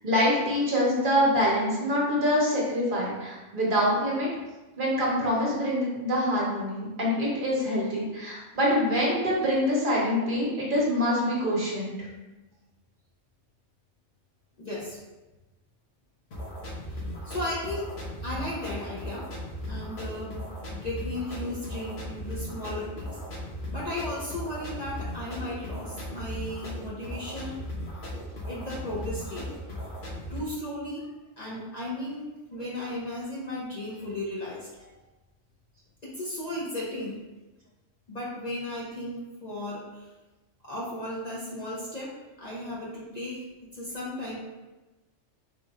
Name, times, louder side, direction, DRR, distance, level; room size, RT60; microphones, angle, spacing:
voice 1, 0.0-4.3 4.8-11.9, equal, 45° right, -5 dB, 1.0 m, -25 dB
voice 2, 14.6-15.0 16.9-17.9 18.2-19.3 19.7-20.4 20.7-23.2 23.7-27.5 28.5-29.5 30.3-31.0 31.4-34.7 36.0-37.2 38.1-40.0 40.6-42.1 42.4-43.4 43.7-44.4, left 1 dB, 40° left, -7 dB, 0.7 m, -35 dB
sound 1, 16.3-30.4, equal, 65° left, 1.1 m, -37 dB
3.6 x 2.4 x 4.1 m, 1.1 s
omnidirectional pair, 1.2 m